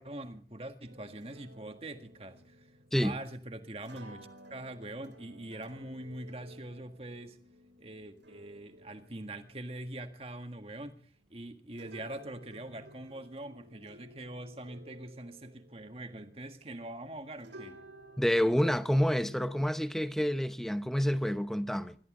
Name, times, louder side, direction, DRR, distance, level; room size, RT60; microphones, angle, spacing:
voice 1, 0.0-2.7 3.0-7.4 7.8-11.0 11.3-17.8, right 1 dB, 35° right, 1.7 m, -43 dB
sound 1, 0.8-17.1 17.4-19.7, right 1 dB, 90° right, 5.5 m, -56 dB
voice 2, 18.2-22.0, equal, ahead, 0.8 m, -28 dB
26.5 x 14.0 x 3.8 m
head